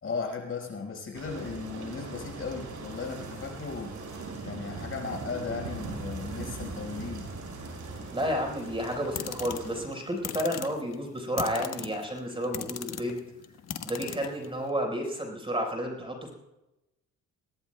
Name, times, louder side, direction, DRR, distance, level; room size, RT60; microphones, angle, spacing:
voice 1, 0.0-3.9 4.4-7.3, left 4 dB, 45° left, 2 dB, 4.9 m, -36 dB
sound 1, 1.1-9.8, right 3 dB, 75° right, 5.4 m, -40 dB
voice 2, 8.1-13.2 13.8-16.3, equal, 15° right, 2 dB, 4.5 m, -31 dB
sound 2, 8.6-14.7, left 8 dB, 60° left, 1.3 m, -39 dB
22.5 x 18.0 x 2.2 m, 0.96 s
cardioid pair, 90°, 30 cm